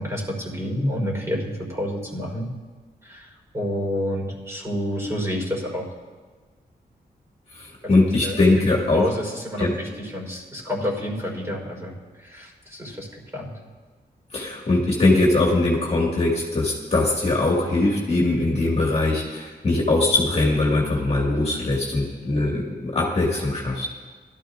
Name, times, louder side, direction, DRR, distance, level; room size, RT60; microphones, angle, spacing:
voice 1, 0.0-2.5 3.0-5.9 7.9-8.4 8.9-11.9 12.2-13.1 13.3-13.5, left 1 dB, 15° right, -2 dB, 4.2 m, -29 dB
voice 2, 7.5-9.1 9.6-9.7 14.3-23.9, left 2 dB, 35° left, -2 dB, 2.0 m, -21 dB
21.5 x 13.0 x 2.6 m, 1.4 s
wide cardioid pair, 145°, 17 cm